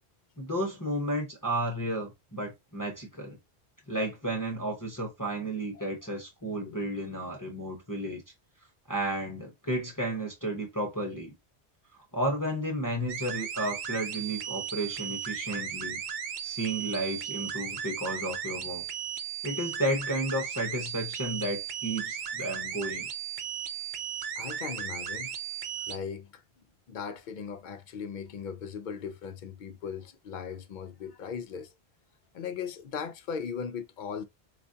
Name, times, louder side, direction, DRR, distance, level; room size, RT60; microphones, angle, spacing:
voice 1, 0.4-3.4 3.9-8.2 8.9-11.3 12.1-16.0 16.4-18.8 19.4-23.1, right 1 dB, 20° left, 1.0 m, -32 dB
sound 1, 13.1-26.0, right 8 dB, 55° right, 0.6 m, -36 dB
voice 2, 24.4-25.3 25.9-26.4 26.9-31.7 32.3-34.2, left 6 dB, 60° left, 0.5 m, -38 dB
4.9 x 2.2 x 2.7 m
omnidirectional pair, 1.1 m